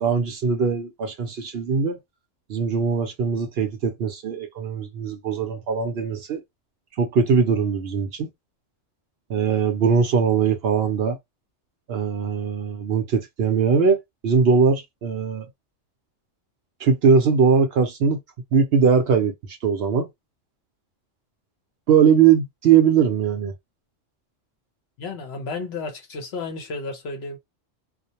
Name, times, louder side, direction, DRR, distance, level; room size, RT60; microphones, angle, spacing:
voice 1, 0.0-2.0 2.5-6.4 7.0-8.3 9.3-11.2 11.9-15.5 16.8-18.2 18.5-20.1 21.9-23.5, right 6 dB, 65° right, 0.7 m, -20 dB
voice 2, 25.0-27.4, left 3 dB, 60° left, 0.9 m, -32 dB
2.4 x 2.0 x 2.7 m
omnidirectional pair, 1.3 m